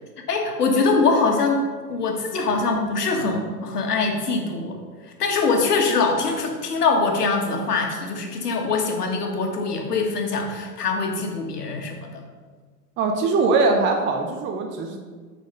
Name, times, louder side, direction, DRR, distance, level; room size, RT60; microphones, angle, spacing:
voice 1, 0.3-4.8 5.2-12.2, left 4 dB, 75° left, 2 dB, 1.6 m, -23 dB
voice 2, 13.0-15.0, right 3 dB, 25° right, 3 dB, 0.7 m, -21 dB
8.1 x 4.2 x 5.3 m, 1.5 s
figure-of-eight pair, 100°, 47 cm